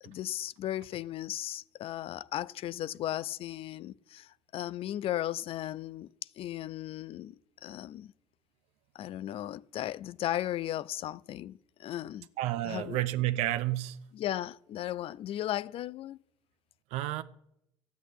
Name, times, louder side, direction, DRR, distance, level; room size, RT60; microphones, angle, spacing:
voice 1, 0.0-6.1 6.4-7.3 7.6-8.1 8.9-12.3 12.6-13.0 14.1-16.2, left 13 dB, 55° left, 0.5 m, -36 dB
voice 2, 12.4-14.0 16.9-17.2, right 15 dB, 75° right, 0.6 m, -30 dB
13.0 x 8.2 x 10.0 m
supercardioid pair, 80°, 11 cm